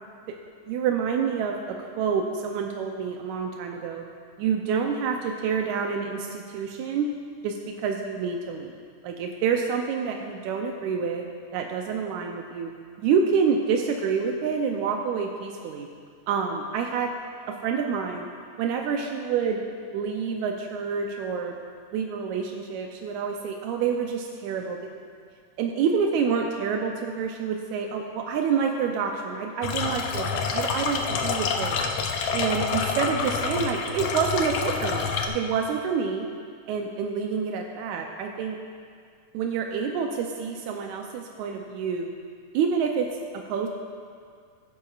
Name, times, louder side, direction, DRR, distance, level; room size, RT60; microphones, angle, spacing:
voice 1, 0.7-4.1 4.4-7.1 7.4-11.3 11.5-12.7 13.0-15.9 16.3-17.1 17.5-18.3 18.6-19.6 19.9-21.6 21.9-24.9 25.6-31.8 32.3-36.3 36.7-38.6 39.3-42.1 42.5-43.7, right 6 dB, 85° right, 2 dB, 2.0 m, -28 dB
sound 1, 29.6-35.3, left 5 dB, 75° left, 1.4 m, -27 dB
15.5 x 10.5 x 2.4 m, 2.1 s
omnidirectional pair, 3.3 m